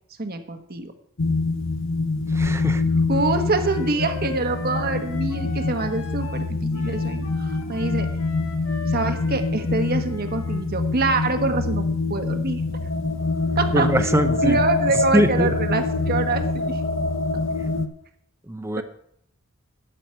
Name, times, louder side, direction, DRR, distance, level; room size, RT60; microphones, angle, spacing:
voice 1, 0.2-0.9 3.1-8.1 8.8-11.8 12.1-12.6 13.6-13.9 14.4-16.8 18.8-18.9, right 3 dB, 45° right, 7 dB, 1.2 m, -25 dB
sound 1, 1.2-17.9, left 3 dB, 60° left, 0.8 m, -25 dB
voice 2, 2.3-2.8 13.7-14.6 15.1-15.5 18.4-18.8, right 1 dB, 10° right, 10 dB, 0.6 m, -22 dB
Wind instrument woodwind instrument, 3.1-10.6, left 3 dB, 80° left, 1.8 m, -40 dB
12.5 x 9.1 x 4.5 m, 0.70 s
head